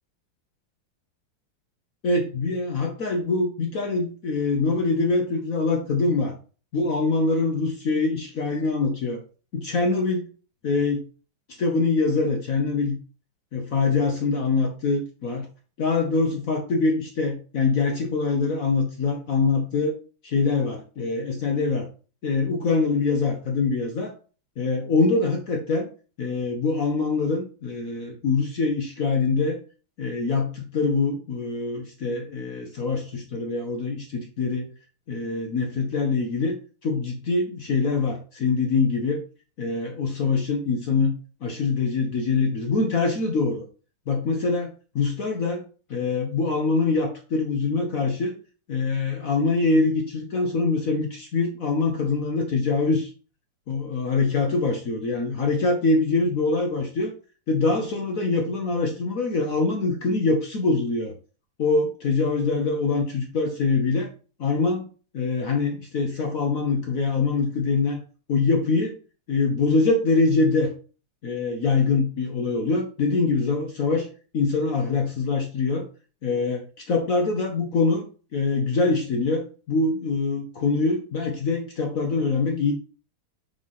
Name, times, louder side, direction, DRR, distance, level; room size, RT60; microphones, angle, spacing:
voice 1, 2.0-6.4 6.7-9.2 9.5-10.2 10.6-11.0 11.6-13.0 13.5-15.5 15.8-19.9 20.2-21.9 22.2-24.1 24.6-25.9 26.2-29.6 30.0-34.7 35.1-36.6 36.8-39.2 39.6-41.1 41.4-43.6 44.1-45.6 45.9-48.3 48.7-53.1 53.7-57.1 57.5-61.1 61.6-64.1 64.4-64.8 65.1-68.0 68.3-69.0 69.3-70.7 71.2-74.1 74.3-75.9 76.2-78.1 78.3-82.7, left 3 dB, 55° left, 3 dB, 1.0 m, -24 dB
5.2 x 3.3 x 5.6 m, 0.37 s
omnidirectional pair, 2.3 m